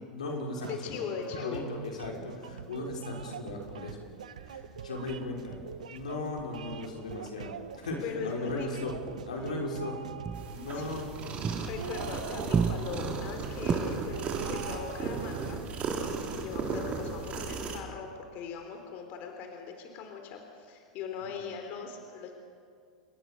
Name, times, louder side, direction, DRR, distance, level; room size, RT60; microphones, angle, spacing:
voice 1, 0.1-1.1 1.3-4.1 4.4-5.6 5.9-8.9 9.3-10.0 10.5-11.2 15.6-15.8 16.3-16.5, left 2 dB, 90° left, 0 dB, 5.7 m, -37 dB
voice 2, 0.6-1.7 8.0-9.0 10.7-11.0 11.6-15.7 16.3-22.3, left 6 dB, 50° left, 4 dB, 3.7 m, -40 dB
sound 1, 0.6-15.5, right 8 dB, 85° right, 1.2 m, -44 dB
sound 2, 3.6-7.3 7.6-7.9 8.2-12.1 12.3-13.7, right 5 dB, 20° right, 1.2 m, -36 dB
sound 3, 10.3-17.8, right 5 dB, 35° right, 3.8 m, -35 dB
27.5 x 22.0 x 6.9 m, 2.2 s
hypercardioid pair, 105°, 4 cm